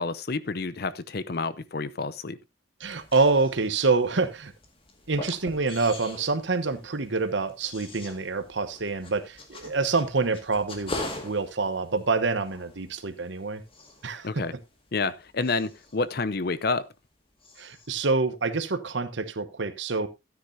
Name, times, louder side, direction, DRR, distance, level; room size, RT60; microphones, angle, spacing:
voice 1, 0.0-2.4 14.2-14.5 14.9-16.9, left 3 dB, 55° left, 0.6 m, -29 dB
sound 1, 2.8-17.1 17.4-18.0, left 2 dB, 30° left, 2.0 m, -43 dB
voice 2, 2.8-4.5 5.1-11.0 11.2-13.6 14.0-14.4 17.6-20.1, right 3 dB, 75° right, 1.0 m, -26 dB
13.5 x 9.5 x 2.7 m
head